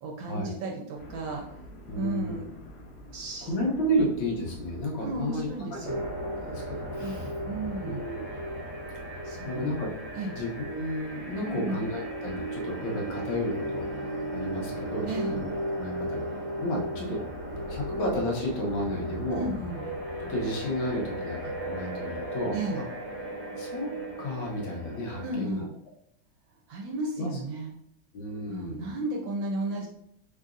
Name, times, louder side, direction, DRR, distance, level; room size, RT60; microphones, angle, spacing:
voice 1, 0.0-1.6 1.9-2.5 3.1-3.5 5.0-6.0 7.0-7.2 7.5-8.0 9.2-9.7 10.1-10.3 11.4-11.8 15.1-15.4 19.3-19.9 22.5-22.8 25.2-25.7 26.7-27.7 28.5-29.9, right 2 dB, 75° right, 0 dB, 1.4 m, -33 dB
sound 1, 1.0-15.8, left 1 dB, 60° left, 1.4 m, -50 dB
voice 2, 1.9-2.5 3.4-7.3 7.9-8.7 9.5-9.9 10.3-13.8 14.3-15.5 15.8-16.3 16.6-17.2 17.7-19.4 20.2-22.8 23.6-25.7 27.2-27.3 28.1-28.9, equal, 80° left, -2 dB, 1.8 m, -32 dB
sound 2, 5.8-25.3, right 1 dB, 45° right, 1.2 m, -36 dB
3.9 x 3.9 x 2.5 m, 0.73 s
omnidirectional pair, 2.2 m